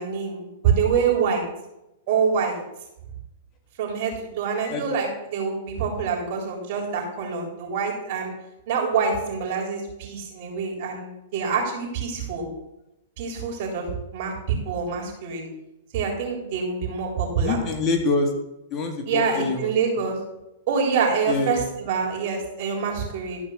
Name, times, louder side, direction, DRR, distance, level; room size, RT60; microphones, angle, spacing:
voice 1, 0.0-1.4 2.1-2.6 3.8-8.3 8.7-12.4 13.2-13.9 14.1-15.4 15.9-17.6 19.1-20.2 20.7-23.4, right 6 dB, 55° right, 0 dB, 4.0 m, -26 dB
voice 2, 17.4-18.3 18.7-19.7 21.3-21.6, left 3 dB, 30° left, 3 dB, 2.1 m, -25 dB
13.0 x 5.2 x 6.6 m, 0.90 s
hypercardioid pair, 125°, 0 cm